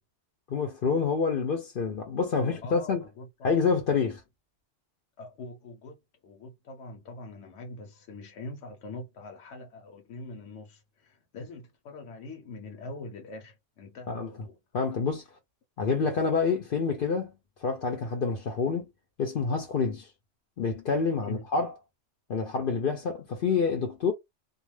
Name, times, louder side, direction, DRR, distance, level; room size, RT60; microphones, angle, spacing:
voice 1, 0.5-3.1 3.4-4.2 14.1-14.3 14.7-15.2 15.8-17.3 17.6-18.9 19.2-20.1 20.6-21.8 22.3-24.1, left 5 dB, 55° left, 0.8 m, -27 dB
voice 2, 2.4-3.5 5.2-5.9 6.2-14.6 21.3-21.5, left 2 dB, 80° left, 1.1 m, -43 dB
2.4 x 2.3 x 3.1 m
omnidirectional pair, 1.2 m